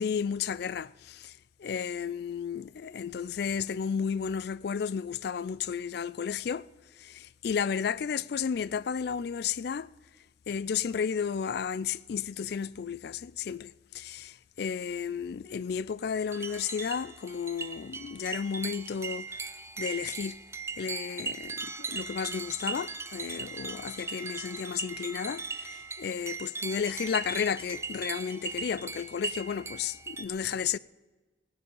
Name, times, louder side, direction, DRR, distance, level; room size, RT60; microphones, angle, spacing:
voice 1, 0.0-6.7 7.0-9.9 10.5-19.4 19.8-20.4 20.8-30.8, left 7 dB, 55° left, 0.3 m, -33 dB
sound 1, 16.3-30.3, right 4 dB, 15° right, 0.5 m, -39 dB
16.0 x 10.0 x 5.5 m
head